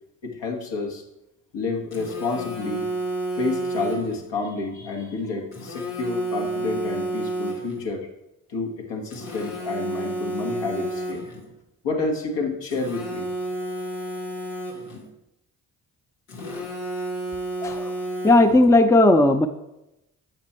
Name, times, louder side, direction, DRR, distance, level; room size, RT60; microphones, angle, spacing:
voice 1, 0.2-1.0 1.5-2.9 3.3-8.1 8.5-11.3 11.8-13.3, left 3 dB, 70° left, 1 dB, 1.5 m, -29 dB
Telephone, 1.9-4.3 5.5-7.9 9.1-11.5 12.7-15.1 16.3-18.7, right 1 dB, 90° left, 1.2 m, -31 dB
voice 2, 17.6-17.9 18.2-19.5, left 2 dB, 5° left, 9 dB, 0.5 m, -16 dB
8.0 x 5.3 x 4.3 m, 0.90 s
hypercardioid pair, 40°, 45 cm